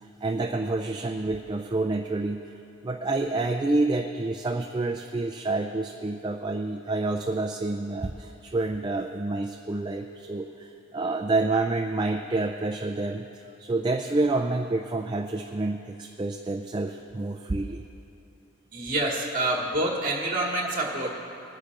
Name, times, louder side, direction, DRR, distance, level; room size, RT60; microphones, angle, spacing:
voice 1, 0.2-2.4 2.8-17.8, right 2 dB, 20° right, 3 dB, 0.3 m, -28 dB
voice 2, 18.7-21.2, right 1 dB, 40° right, -2 dB, 1.8 m, -27 dB
23.5 x 9.8 x 2.5 m, 2.7 s
head